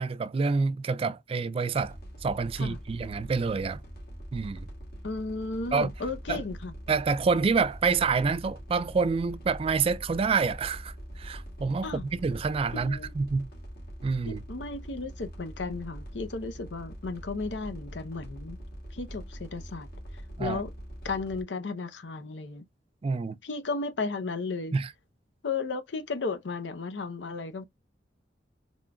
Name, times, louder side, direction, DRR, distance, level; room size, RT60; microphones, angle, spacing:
voice 1, 0.0-2.0 2.2-3.8 4.3-4.7 5.7-5.9 6.3-6.4 6.9-13.5 14.0-14.4 20.4-20.6 23.0-23.4 24.7-24.9, right 4 dB, 30° right, 0.3 m, -27 dB
sound 1, 1.7-21.4, equal, 60° left, 2.0 m, -43 dB
voice 2, 5.0-6.7 11.8-12.0 12.7-13.1 14.3-18.6 18.9-19.9 20.4-20.7 21.0-22.7 23.4-24.7 25.4-27.6, left 3 dB, 75° left, 0.7 m, -34 dB
3.7 x 3.6 x 2.3 m
head